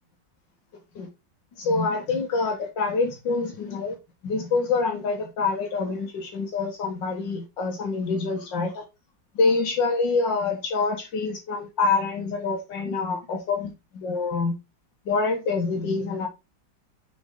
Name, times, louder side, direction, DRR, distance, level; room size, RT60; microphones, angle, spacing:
voice 1, 1.6-4.0 4.2-8.8 9.4-14.5 15.1-16.3, left 4 dB, 75° left, 2.0 m, -26 dB
6.8 x 5.4 x 3.7 m
omnidirectional pair, 2.0 m